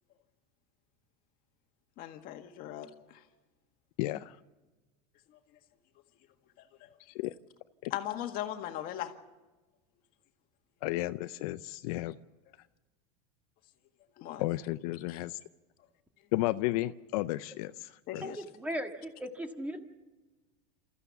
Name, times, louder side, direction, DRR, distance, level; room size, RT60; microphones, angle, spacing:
voice 1, 2.0-3.2 5.3-5.4 6.6-6.9 7.9-9.1 14.2-14.4 15.1-15.2 18.1-18.4, left 12 dB, 50° left, 6 dB, 1.8 m, -39 dB
voice 2, 4.0-4.4 7.0-7.3 7.8-7.9 10.8-12.2 14.4-15.4 16.3-18.2, left 17 dB, 70° left, 12 dB, 0.6 m, -33 dB
voice 3, 18.2-19.8, equal, 5° right, 6 dB, 1.6 m, -37 dB
28.5 x 14.5 x 7.1 m, 1.2 s
supercardioid pair, 135°, 20 cm